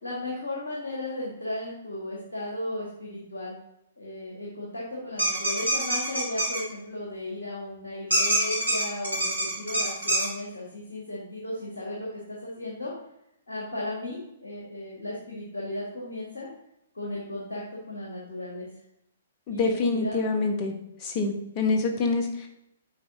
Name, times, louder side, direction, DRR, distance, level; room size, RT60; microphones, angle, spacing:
voice 1, 0.0-3.5 4.0-12.9 13.5-16.5 16.9-18.7 19.5-20.4, left 1 dB, 70° left, -4 dB, 1.7 m, -35 dB
sound 1, 5.2-6.6 8.1-10.3, right 1 dB, 80° right, 2.1 m, -25 dB
voice 2, 19.5-20.7 21.0-22.5, left 3 dB, 30° left, 3 dB, 1.1 m, -26 dB
7.8 x 4.8 x 2.7 m, 0.80 s
figure-of-eight pair, 115°, 0 cm